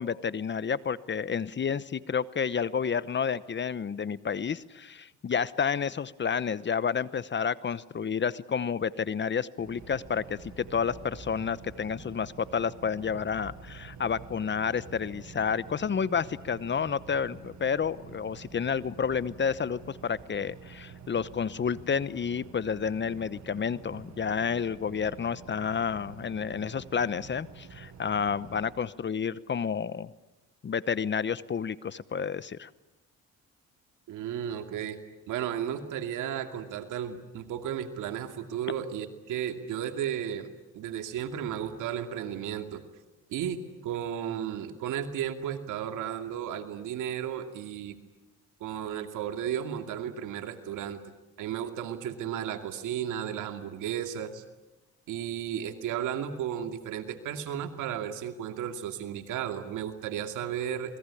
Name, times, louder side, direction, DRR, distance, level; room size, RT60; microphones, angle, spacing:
voice 1, 0.0-30.1 30.6-32.7, left 6 dB, 35° left, 17 dB, 0.9 m, -30 dB
sound 1, 9.6-28.7, right 6 dB, 70° right, 7.2 m, -48 dB
voice 2, 34.1-35.0 35.3-40.5 40.7-42.8 43.3-48.0 48.6-51.0 51.4-54.4 55.1-61.0, right 9 dB, 90° right, 7 dB, 2.5 m, -34 dB
28.5 x 21.0 x 10.0 m, 1.0 s
cardioid pair, 90°, 30 cm